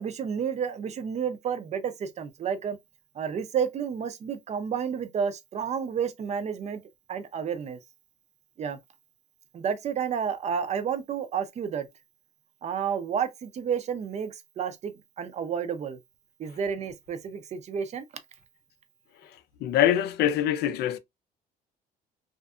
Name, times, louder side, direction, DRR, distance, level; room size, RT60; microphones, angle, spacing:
voice 1, 0.0-2.8 3.2-6.8 7.1-7.8 8.6-8.8 9.5-11.9 12.6-16.0 16.4-18.0, right 7 dB, 40° right, 0.5 m, -31 dB
voice 2, 19.6-21.0, left 11 dB, 75° left, 0.4 m, -24 dB
2.5 x 2.4 x 2.3 m
cardioid pair, 110°, 17 cm